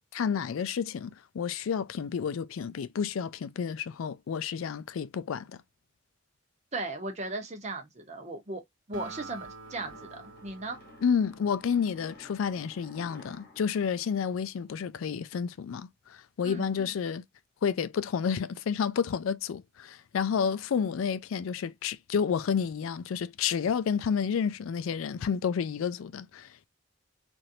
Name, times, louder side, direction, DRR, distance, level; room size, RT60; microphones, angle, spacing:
voice 1, 0.1-5.6 11.0-17.2 17.6-26.7, left 7 dB, 85° left, 0.4 m, -30 dB
voice 2, 6.7-8.6 8.9-10.8 16.4-16.7, right 2 dB, 35° right, 0.9 m, -37 dB
Acoustic guitar, 8.9-12.5, right 4 dB, 65° right, 1.3 m, -47 dB
sound 1, 9.6-15.0, left 2 dB, 45° left, 1.1 m, -54 dB
3.1 x 2.6 x 2.7 m
head